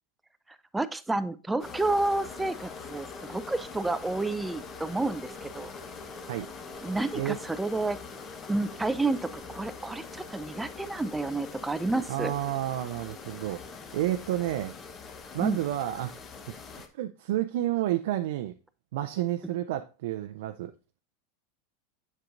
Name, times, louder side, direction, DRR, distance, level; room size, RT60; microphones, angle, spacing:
voice 1, 0.7-5.7 6.8-8.0 8.5-12.3 15.4-15.6, right 2 dB, 10° right, 0.5 m, -30 dB
sound 1, 1.6-16.9, left 4 dB, 35° left, 1.0 m, -43 dB
voice 2, 12.1-14.7 15.3-16.2 16.9-18.6 18.9-20.7, right 13 dB, 70° right, 0.5 m, -30 dB
7.7 x 6.6 x 2.5 m
hypercardioid pair, 100°, 0 cm